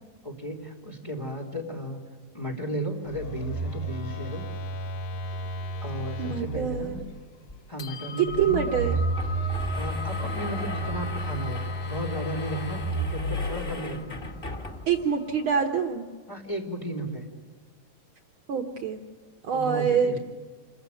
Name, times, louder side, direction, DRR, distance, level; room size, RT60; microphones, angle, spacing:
voice 1, 0.2-2.0 2.3-4.5 5.8-7.0 7.7-9.0 9.5-14.2 16.3-17.3 19.5-20.2, right 1 dB, 10° left, 1 dB, 2.8 m, -34 dB
Telephone, 3.1-7.1 8.3-14.0, right 1 dB, 55° left, 2.0 m, -32 dB
sound 1, 3.8-5.8 6.1-6.2 6.6-7.2 7.6-15.7, left 2 dB, 35° left, 2.1 m, -42 dB
voice 2, 6.2-6.9 8.2-9.0 14.9-16.0 18.5-19.0 19.4-20.2, right 7 dB, 80° right, 4 dB, 1.1 m, -25 dB
sound 2, 7.5-7.6 7.9-8.0 8.7-15.1, left 2 dB, 80° left, 0.5 m, -39 dB
28.0 x 15.0 x 9.2 m, 1.5 s
omnidirectional pair, 4.0 m